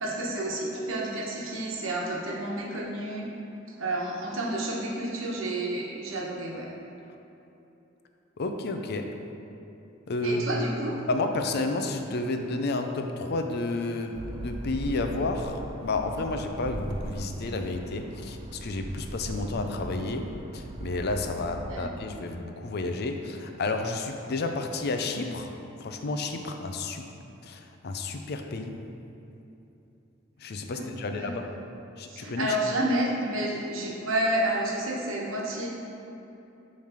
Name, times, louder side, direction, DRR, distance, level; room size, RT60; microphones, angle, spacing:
voice 1, 0.0-3.3 3.8-6.7 10.2-10.9 21.7-21.9 30.7-31.5 32.1-35.7, right 1 dB, 70° right, -3 dB, 1.1 m, -30 dB
voice 2, 8.4-9.1 10.1-10.7 11.1-25.5 25.8-27.1 27.4-28.8 30.4-31.5 32.0-32.6, left 2 dB, 50° left, 5 dB, 0.5 m, -31 dB
sound 1, 14.1-21.8, right 1 dB, 25° right, 0.3 m, -39 dB
7.1 x 3.3 x 5.6 m, 2.9 s
head